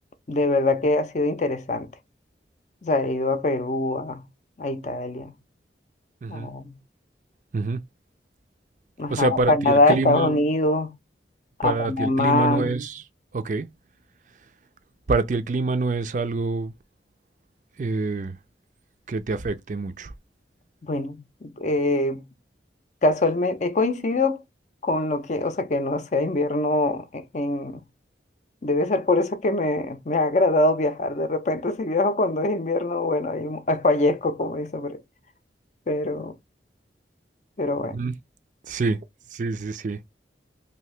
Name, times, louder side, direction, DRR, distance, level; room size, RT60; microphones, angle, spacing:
voice 1, 0.3-1.9 2.8-4.2 4.6-5.3 6.3-6.8 9.0-11.0 11.6-12.8 20.8-22.2 23.0-24.4 24.8-27.8 28.6-35.0 35.9-36.3 37.6-38.0, left 2 dB, 40° left, 0.5 m, -23 dB
voice 2, 9.1-9.5 9.9-10.4 11.6-13.0 13.3-13.7 15.1-16.7 17.8-18.4 19.1-20.1 37.9-38.1 38.7-39.0 39.3-40.0, right 3 dB, 45° right, 0.4 m, -26 dB
2.8 x 2.7 x 3.1 m
head